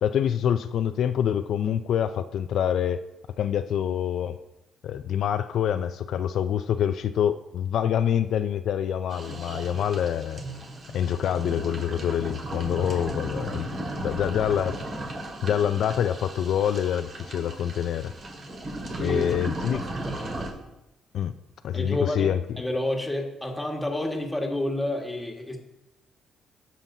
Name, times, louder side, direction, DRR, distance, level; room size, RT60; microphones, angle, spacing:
voice 1, 0.0-3.0 3.4-4.4 4.8-10.4 10.9-13.7 14.0-14.8 15.4-18.1 19.0-19.8 21.1-21.3 21.6-22.4, left 9 dB, 70° left, 9 dB, 0.3 m, -26 dB
Scuba bubbles, 9.1-20.5, right 1 dB, 45° right, 2.0 m, -36 dB
voice 2, 19.0-19.3 19.7-20.5 21.7-25.6, left 1 dB, 10° left, 1 dB, 1.6 m, -30 dB
15.5 x 5.6 x 2.7 m, 0.94 s
cardioid pair, 90°, 0 cm